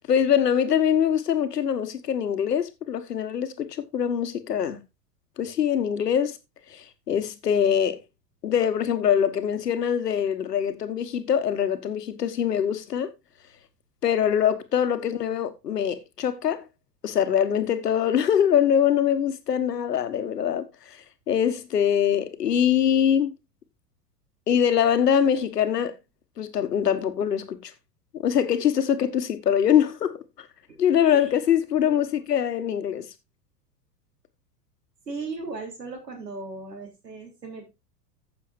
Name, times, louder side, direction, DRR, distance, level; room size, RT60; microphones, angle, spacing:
voice 1, 0.0-4.8 5.4-6.4 6.7-8.0 8.4-13.1 14.0-16.6 17.0-21.0 21.3-23.3 24.5-25.9 26.4-27.7 28.1-30.5 30.8-33.1, left 9 dB, 75° left, 1.6 m, -23 dB
voice 2, 31.0-31.3 31.9-32.0 35.1-37.7, right 3 dB, 85° right, 3.6 m, -37 dB
15.0 x 7.0 x 2.6 m
figure-of-eight pair, 95°, 48 cm